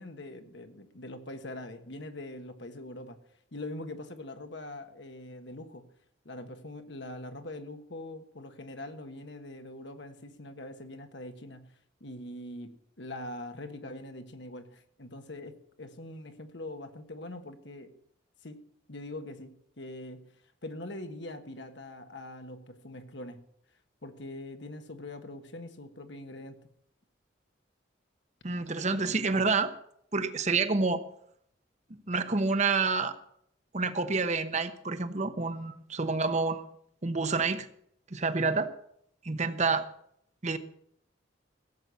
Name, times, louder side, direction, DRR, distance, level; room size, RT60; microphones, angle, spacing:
voice 1, 0.0-3.2 3.5-5.9 6.2-11.7 12.0-18.0 18.4-20.3 20.6-23.4 24.0-26.6, left 1 dB, 65° left, 7 dB, 1.4 m, -43 dB
voice 2, 28.4-29.7 30.1-31.0 31.9-33.1 33.7-36.6 37.0-37.7 38.1-38.7 39.2-39.9 40.4-40.6, right 4 dB, 40° right, 10 dB, 1.0 m, -28 dB
16.0 x 7.9 x 7.0 m, 0.71 s
head